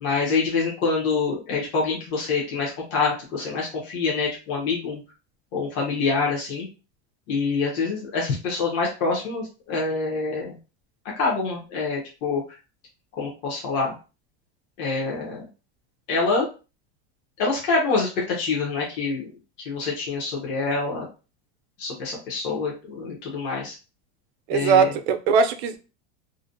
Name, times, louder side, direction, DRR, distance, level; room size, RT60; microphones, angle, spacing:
voice 1, 0.0-5.0 5.5-6.7 7.3-10.6 11.2-12.4 13.2-13.9 14.8-15.5 16.1-16.5 17.4-19.3 19.6-21.1 21.8-23.7 24.5-24.9, left 4 dB, 35° left, 0.6 m, -26 dB
voice 2, 24.5-25.8, right 6 dB, 75° right, 0.5 m, -20 dB
2.5 x 2.1 x 2.5 m
supercardioid pair, 165°, 33 cm